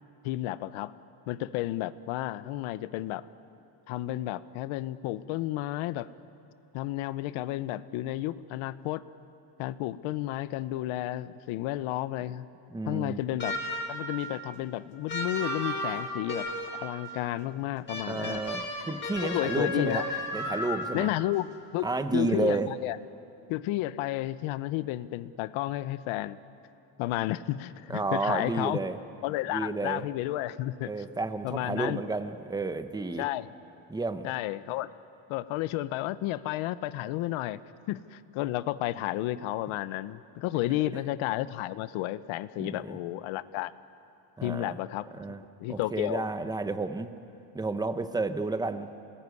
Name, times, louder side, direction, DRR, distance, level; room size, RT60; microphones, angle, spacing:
voice 1, 0.2-0.9 1.3-3.2 3.9-6.1 6.7-9.0 9.6-12.4 12.9-13.5 13.9-18.4 19.2-20.0 20.9-21.5 21.7-23.0 23.5-26.4 27.0-28.8 29.2-30.9 31.4-32.0 33.2-33.5 34.2-34.9 35.3-37.6 37.9-43.7 44.4-45.1 45.6-46.2, left 15 dB, 75° left, 15 dB, 1.0 m, -32 dB
voice 2, 12.7-13.2 18.1-20.0 20.3-21.1 21.8-22.7 27.9-29.0 29.5-30.0 30.9-33.3 33.9-34.3 42.6-43.0 44.4-44.8 45.2-45.4 45.7-47.1 47.5-48.9, right 3 dB, 10° right, 10 dB, 0.8 m, -31 dB
sound 1, 13.4-14.1 15.1-16.9 17.9-21.1, left 1 dB, 25° left, 5.8 m, -34 dB
27.5 x 20.0 x 9.7 m, 2.7 s
cardioid pair, 155°, 49 cm